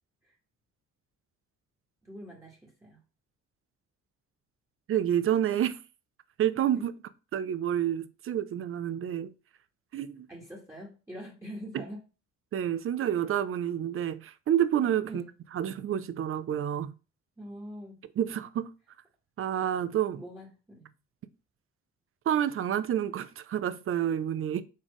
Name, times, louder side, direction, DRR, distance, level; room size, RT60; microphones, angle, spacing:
voice 1, 2.0-3.0 6.7-6.8 10.3-12.0 15.1-15.3 17.4-18.0 20.2-20.9, equal, 10° right, 1.5 m, -44 dB
voice 2, 4.9-5.8 6.4-6.9 7.3-9.3 9.9-10.3 11.7-11.8 12.5-15.2 15.5-16.9 18.2-18.7 19.4-20.2 22.3-24.6, right 10 dB, 45° right, 0.5 m, -29 dB
4.3 x 3.6 x 3.1 m
cardioid pair, 90°, 30 cm